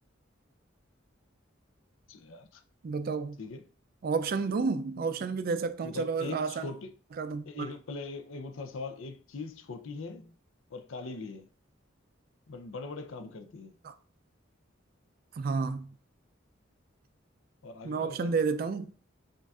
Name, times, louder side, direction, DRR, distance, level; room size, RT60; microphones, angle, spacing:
voice 1, 2.1-2.6 3.4-3.7 5.8-6.9 7.5-10.4 10.7-11.5 12.5-13.8 17.6-18.4, left 3 dB, 85° left, 0.5 m, -41 dB
voice 2, 2.8-3.4 4.0-6.7 7.2-7.7 13.8-13.9 15.4-15.9 17.8-18.9, right 4 dB, 50° right, 0.3 m, -31 dB
6.4 x 2.5 x 2.3 m
head